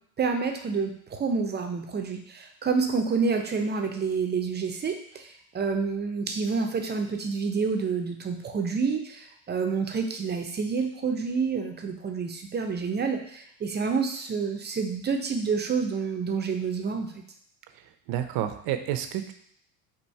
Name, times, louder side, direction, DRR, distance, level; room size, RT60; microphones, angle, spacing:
voice 1, 0.2-5.3 5.5-17.1, right 5 dB, 25° right, 4 dB, 0.5 m, -28 dB
voice 2, 18.1-19.3, right 11 dB, 65° right, 8 dB, 0.6 m, -29 dB
4.2 x 2.5 x 4.6 m, 0.66 s
supercardioid pair, 100°, 39 cm